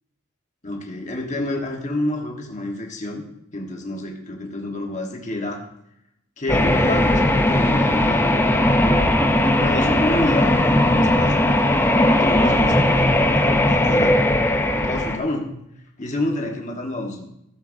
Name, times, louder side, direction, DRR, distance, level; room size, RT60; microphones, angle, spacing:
voice 1, 0.6-3.2 3.5-5.6 6.4-8.4 8.8-9.2 9.4-11.5 12.1-13.1 13.4-14.2 14.7-15.5 16.0-17.3, left 1 dB, 35° left, 1 dB, 1.4 m, -28 dB
sound 1, 6.5-15.2, left 1 dB, 10° left, 0.6 m, -18 dB
15.0 x 8.1 x 2.7 m, 0.80 s
head